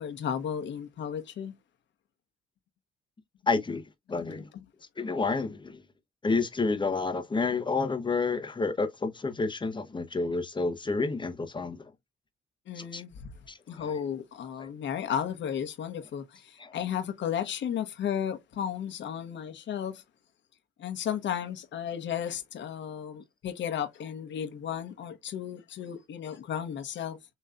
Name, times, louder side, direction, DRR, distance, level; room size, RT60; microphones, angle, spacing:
voice 1, 0.0-1.5 4.5-4.6 12.7-13.3 13.7-20.0 20.8-27.2, left 9 dB, 70° left, 1.1 m, -34 dB
voice 2, 3.5-3.8 4.1-4.5 5.0-5.8 6.2-11.8 12.8-13.0 13.5-13.8 14.6-14.7 16.6-16.8, left 4 dB, 25° left, 1.1 m, -29 dB
6.7 x 3.1 x 2.5 m
cardioid pair, 90°, 20 cm